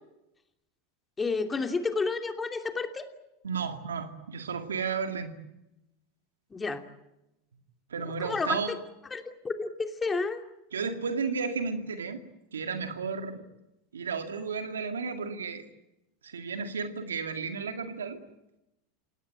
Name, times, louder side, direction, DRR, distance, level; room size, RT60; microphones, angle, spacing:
voice 1, 1.2-3.1 6.5-6.8 8.2-8.6 9.1-10.4, left 4 dB, 20° left, 7 dB, 2.8 m, -30 dB
voice 2, 3.4-5.3 7.9-8.7 10.7-12.2 12.5-13.4 13.9-15.6 16.2-18.2, right 5 dB, 85° right, 7 dB, 2.3 m, -33 dB
28.5 x 18.0 x 9.0 m, 0.92 s
hypercardioid pair, 90°, 0 cm